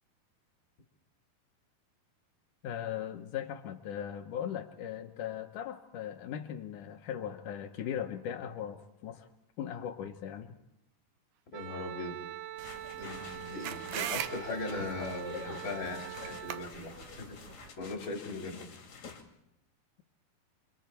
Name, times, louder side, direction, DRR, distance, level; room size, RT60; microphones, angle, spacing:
voice 1, 2.6-9.3 9.6-10.5, left 9 dB, 90° left, 6 dB, 1.8 m, -38 dB
voice 2, 11.5-12.2 13.0-16.9 17.2-17.3 17.8-18.6, left 2 dB, 30° left, 2 dB, 3.7 m, -39 dB
Wind instrument woodwind instrument, 11.5-16.7, right 13 dB, 90° right, 3.7 m, -43 dB
sound 1, 12.6-19.2, left 5 dB, 45° left, 3.3 m, -47 dB
sound 2, 12.6-17.7, right 10 dB, 70° right, 2.3 m, -41 dB
29.0 x 28.5 x 4.5 m, 0.83 s
omnidirectional pair, 5.1 m